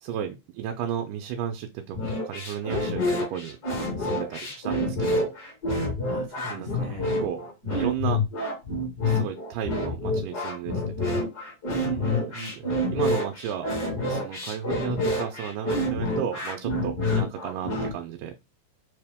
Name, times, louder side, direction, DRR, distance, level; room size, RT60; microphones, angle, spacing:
voice 1, 0.0-5.3 6.5-6.9 7.2-8.2 9.0-11.2 12.6-13.7 14.1-18.4, right 9 dB, 85° right, 4 dB, 2.2 m, -34 dB
sound 1, 1.9-17.9, left 1 dB, 35° left, 2.2 m, -28 dB
voice 2, 6.1-7.1 11.7-12.7, right 4 dB, 70° right, 2 dB, 1.6 m, -38 dB
5.1 x 2.9 x 3.5 m, 0.24 s
omnidirectional pair, 3.7 m